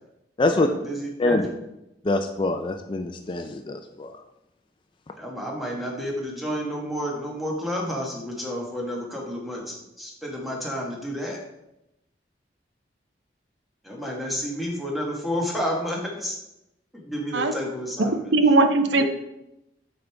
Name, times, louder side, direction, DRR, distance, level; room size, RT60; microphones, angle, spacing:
voice 1, 0.4-1.6 5.2-11.4 13.8-16.4 16.9-18.3 19.0-19.1, equal, ahead, -2 dB, 1.4 m, -30 dB
voice 2, 2.0-4.1, left 2 dB, 30° left, 5 dB, 0.4 m, -24 dB
voice 3, 18.3-19.0, right 3 dB, 80° right, 8 dB, 0.7 m, -18 dB
7.7 x 5.2 x 3.4 m, 0.87 s
head